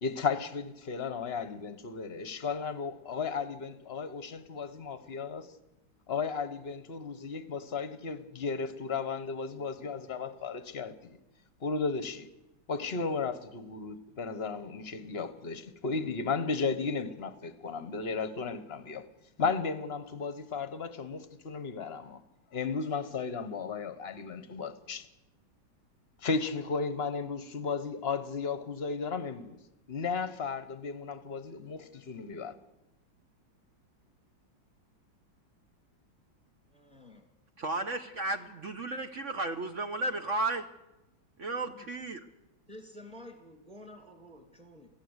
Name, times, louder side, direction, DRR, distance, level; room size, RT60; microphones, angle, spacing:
voice 1, 0.0-5.5 6.1-11.2 11.6-12.3 12.7-19.1 19.4-22.2 22.5-25.1 26.2-29.6 29.9-32.5, left 5 dB, 40° left, 1.1 m, -34 dB
voice 2, 36.7-37.2 41.6-41.9 42.7-44.9, left 1 dB, 20° right, 2.3 m, -50 dB
voice 3, 37.6-40.7 41.4-42.3, right 2 dB, 50° right, 1.0 m, -33 dB
23.5 x 16.0 x 8.1 m
omnidirectional pair, 2.2 m